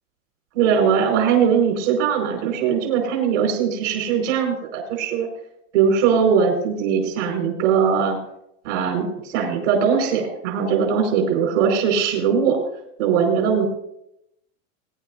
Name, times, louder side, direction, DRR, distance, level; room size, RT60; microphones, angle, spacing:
voice 1, 0.5-5.3 5.7-8.2 8.6-12.6 13.0-13.7, right 7 dB, 65° right, 2 dB, 4.9 m, -20 dB
22.0 x 10.5 x 2.6 m, 0.79 s
supercardioid pair, 140°, 40 cm